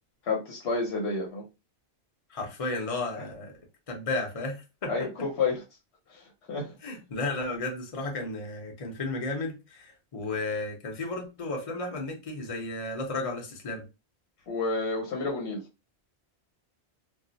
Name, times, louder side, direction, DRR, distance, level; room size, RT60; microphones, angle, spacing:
voice 1, 0.2-1.4 4.9-5.6 6.1-6.7 14.5-15.6, left 3 dB, 75° left, 1.0 m, -30 dB
voice 2, 2.3-3.5 3.9-4.9 6.8-13.8, left 2 dB, 35° left, 0.7 m, -33 dB
2.4 x 2.0 x 3.8 m
omnidirectional pair, 1.1 m